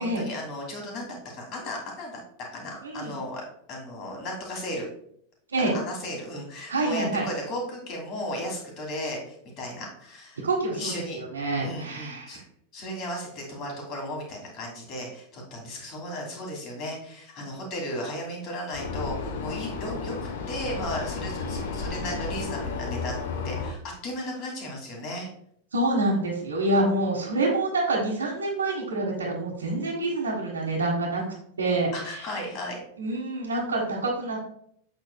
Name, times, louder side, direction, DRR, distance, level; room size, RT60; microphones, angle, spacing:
voice 1, 0.0-2.2 2.5-4.9 5.6-10.4 10.7-11.2 11.6-12.4 12.7-20.1 20.5-25.3 31.9-32.8, left 1 dB, 40° left, 0 dB, 2.6 m, -35 dB
voice 2, 2.8-3.1 5.5-5.7 6.7-7.3 10.4-12.4 25.7-31.2 31.6-32.2 33.0-34.4, right 2 dB, 70° right, -5 dB, 1.5 m, -27 dB
Vehicle, 18.7-23.7, left 4 dB, 55° left, 0.9 m, -32 dB
7.9 x 7.2 x 2.3 m, 0.67 s
figure-of-eight pair, 90°, 0 cm